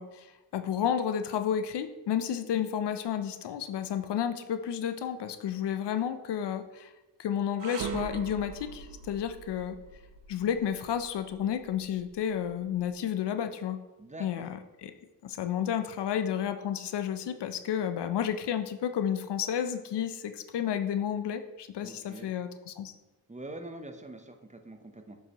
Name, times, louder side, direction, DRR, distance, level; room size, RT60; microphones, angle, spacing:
voice 1, 0.0-6.9 7.2-9.8 10.3-13.8 14.2-14.5 14.8-14.9 15.2-22.9, left 9 dB, 70° left, 9 dB, 0.6 m, -31 dB
sound 1, 7.6-12.8, right 7 dB, 85° right, 0.7 m, -42 dB
voice 2, 14.0-14.5 21.8-22.3 23.3-25.2, right 2 dB, 15° right, 6 dB, 0.7 m, -44 dB
7.6 x 5.4 x 2.9 m, 1.1 s
cardioid pair, 65°, 43 cm